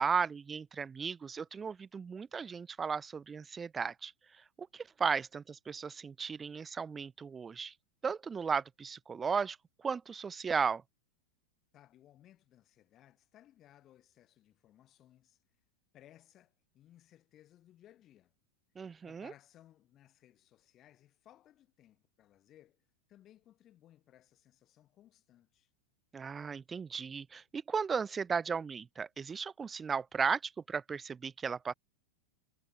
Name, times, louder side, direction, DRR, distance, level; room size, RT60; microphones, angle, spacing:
voice 1, 0.0-4.1 4.6-7.7 8.0-9.6 9.8-10.8 18.8-19.3 26.1-31.7, right 6 dB, 15° right, 0.3 m, -35 dB
voice 2, 11.7-15.4 15.9-18.3 19.0-25.7, left 12 dB, 30° left, 4.5 m, -62 dB
figure-of-eight pair, 90°, 0 cm